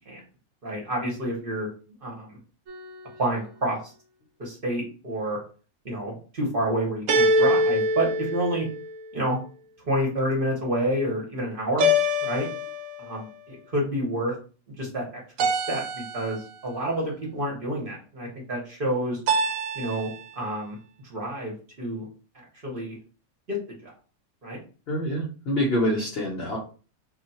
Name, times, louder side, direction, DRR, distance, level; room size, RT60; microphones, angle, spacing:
voice 1, 0.6-1.7 2.0-2.4 3.2-3.9 4.4-5.4 5.8-8.7 9.1-9.4 9.9-11.9 12.2-12.5 13.0-14.3 14.8-15.1 15.5-19.2 19.7-20.1 20.4-20.8 21.1-22.0 22.6-23.0 23.5-23.9 24.4-24.6, right 1 dB, 45° right, -2 dB, 0.9 m, -28 dB
sound 1, 2.7-3.3 7.1-9.1 11.8-13.2 15.4-16.6 19.3-20.3, equal, 70° right, 0.9 m, -25 dB
voice 2, 24.9-26.6, equal, 50° left, -2 dB, 0.8 m, -26 dB
2.5 x 2.2 x 4.0 m, 0.37 s
omnidirectional pair, 1.5 m